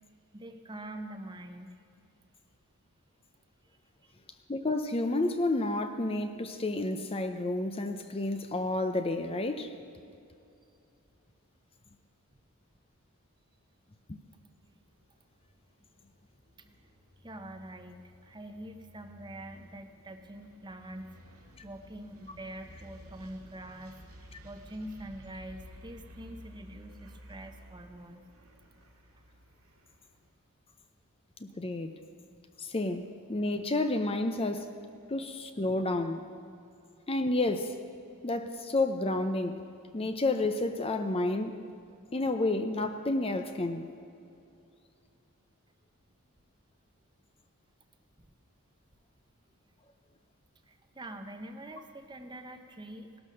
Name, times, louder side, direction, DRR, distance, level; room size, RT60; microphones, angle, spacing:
voice 1, 0.3-1.8 4.0-4.1 17.2-21.4 21.6-28.3 50.7-53.2, right 1 dB, 20° right, 7 dB, 0.9 m, -45 dB
voice 2, 4.5-9.7 14.1-14.2 31.4-31.9 32.6-34.7 35.1-36.3 37.1-37.7 38.2-39.6 39.9-41.6 42.1-43.9, left 2 dB, 25° left, 7 dB, 0.7 m, -30 dB
sound 1, 14.6-30.3, equal, 90° right, 2.8 m, -54 dB
18.0 x 12.0 x 6.4 m, 2.6 s
head